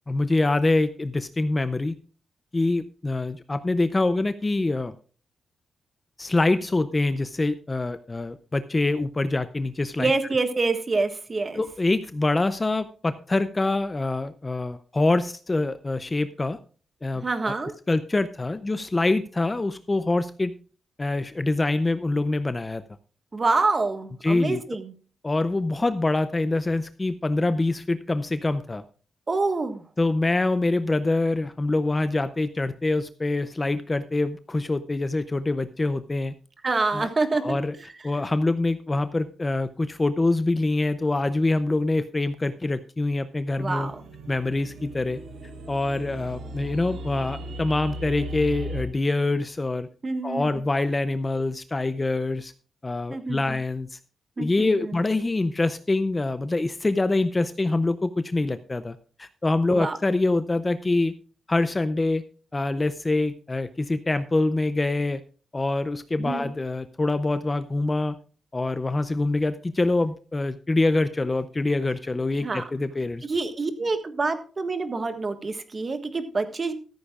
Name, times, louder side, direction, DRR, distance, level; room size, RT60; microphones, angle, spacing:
voice 1, 0.1-1.9 2.5-4.9 6.2-10.1 11.6-16.6 17.0-17.5 17.9-20.5 21.0-22.8 24.2-24.6 25.2-28.8 30.0-36.3 36.9-37.1 37.3-37.7 38.0-43.9 44.3-45.2 45.7-49.9 50.2-52.5 52.8-54.0 54.4-61.1 61.5-62.2 62.5-65.2 65.5-68.2 68.5-73.3, left 2 dB, 15° left, 12 dB, 0.5 m, -25 dB
voice 2, 10.0-11.6 17.1-17.7 23.3-24.9 29.3-29.8 36.6-37.9 43.6-44.0 50.0-50.6 53.1-53.4 54.4-55.0 59.7-60.0 66.2-66.5 72.4-72.7 73.2-76.7, right 3 dB, 25° right, 8 dB, 1.5 m, -27 dB
sound 1, 43.5-48.8, equal, 80° right, 3.4 m, -37 dB
14.0 x 14.0 x 2.4 m, 0.39 s
wide cardioid pair, 175°, 0 cm